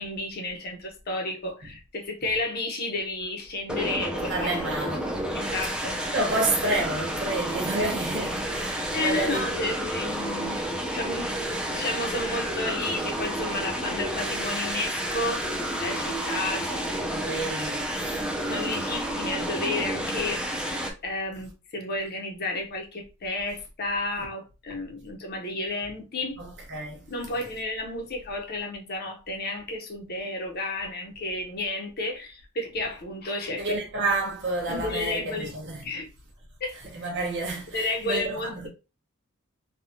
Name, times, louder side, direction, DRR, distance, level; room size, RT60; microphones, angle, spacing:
voice 1, 0.0-4.5 5.3-6.0 8.9-10.6 10.9-11.4 11.7-17.1 18.5-26.4 27.1-34.1 34.7-35.6 35.8-36.1 36.6-36.8 37.7-38.7, left 2 dB, 45° left, 0.7 m, -32 dB
sound 1, 3.7-20.9, right 1 dB, 5° right, 0.4 m, -30 dB
voice 2, 4.1-5.2 6.1-9.4 17.1-18.2 26.4-27.0 33.6-35.8 36.9-38.7, right 2 dB, 55° right, 1.0 m, -30 dB
3.4 x 2.3 x 2.6 m
head